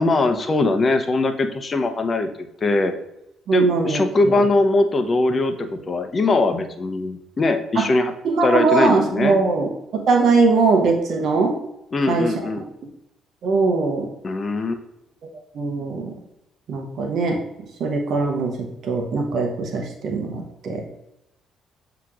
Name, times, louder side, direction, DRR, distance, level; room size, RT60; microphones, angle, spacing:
voice 1, 0.0-2.3 2.6-2.9 3.5-8.1 8.4-9.4 11.9-12.6 14.2-14.8, left 2 dB, 40° left, 7 dB, 0.7 m, -21 dB
voice 2, 3.5-4.0 4.3-4.4 7.8-7.9 8.3-11.6 12.1-12.3 13.4-14.1 15.5-16.1 16.7-17.4 17.8-20.8, right 4 dB, 65° right, 3 dB, 0.8 m, -21 dB
7.4 x 2.9 x 2.4 m, 0.86 s
hypercardioid pair, 55°, 0 cm